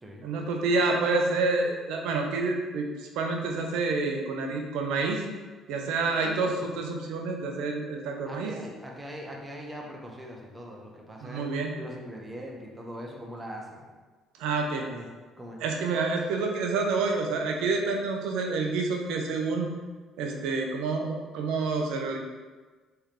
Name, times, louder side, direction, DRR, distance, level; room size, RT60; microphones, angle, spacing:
voice 1, 0.2-2.9 3.2-5.2 5.7-8.5 11.2-11.8 14.4-14.8 15.6-19.7 20.2-22.2, right 3 dB, 75° right, 2 dB, 0.5 m, -28 dB
voice 2, 6.1-6.6 8.3-11.5 11.7-13.9 14.8-15.1 15.4-15.6, equal, 15° right, -1 dB, 0.9 m, -41 dB
3.6 x 3.2 x 2.9 m, 1.4 s
hypercardioid pair, 60°, 0 cm